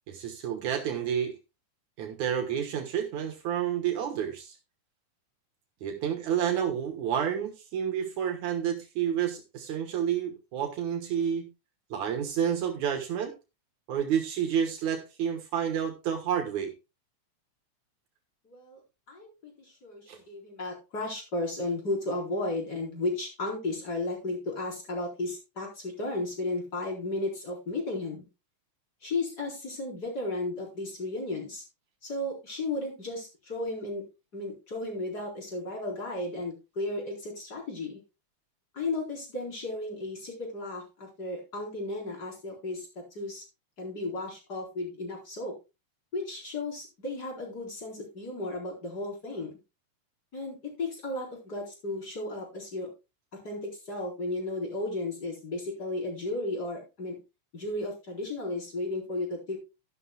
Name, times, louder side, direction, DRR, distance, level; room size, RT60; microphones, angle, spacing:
voice 1, 0.1-1.4 2.0-4.6 5.8-11.5 11.9-13.3 13.9-16.7 20.1-20.2, right 8 dB, 75° right, 4 dB, 2.6 m, -30 dB
voice 2, 18.4-18.8 19.1-28.2 29.0-31.6 32.0-34.0 34.3-38.0 38.7-42.9 43.1-43.4 43.8-45.5 46.1-49.5 50.3-52.9 53.4-57.2 57.5-59.6, left 2 dB, 30° left, -1 dB, 4.6 m, -34 dB
12.5 x 11.5 x 2.3 m, 0.27 s
omnidirectional pair, 3.4 m